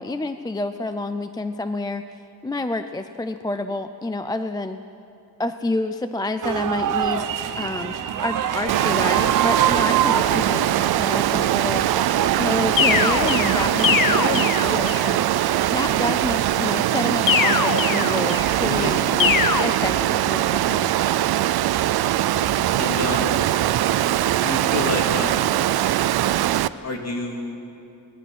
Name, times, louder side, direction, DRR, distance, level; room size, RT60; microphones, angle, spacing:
voice 1, 0.0-4.8 5.4-7.3 7.6-8.0 8.2-15.4 15.7-20.9, left 2 dB, 10° left, 9 dB, 0.4 m, -29 dB
sound 1, 6.4-12.8, right 9 dB, 55° right, 0.9 m, -25 dB
Water, 8.7-26.7, right 13 dB, 80° right, 0.6 m, -21 dB
sound 2, 12.8-15.2 17.3-18.6 19.2-19.6, left 7 dB, 60° left, 1.0 m, -22 dB
voice 2, 18.6-19.0 22.3-23.4 24.4-25.6 26.8-27.6, left 2 dB, 40° left, 1 dB, 2.7 m, -29 dB
24.5 x 20.0 x 6.2 m, 2.7 s
wide cardioid pair, 160°, 37 cm